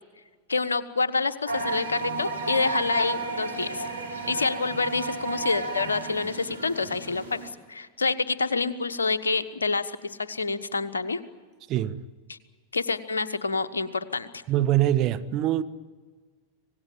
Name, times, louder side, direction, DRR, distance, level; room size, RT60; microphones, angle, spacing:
voice 1, 0.5-3.9 4.3-7.4 7.7-11.2 12.3-12.4 12.7-14.4, left 4 dB, 75° left, 1.2 m, -27 dB
sound 1, 1.5-7.5, right 4 dB, 85° right, 4.4 m, -33 dB
voice 2, 11.7-12.0 14.5-15.6, right 13 dB, 35° right, 1.2 m, -23 dB
26.0 x 18.5 x 9.0 m
figure-of-eight pair, 90°, 0 cm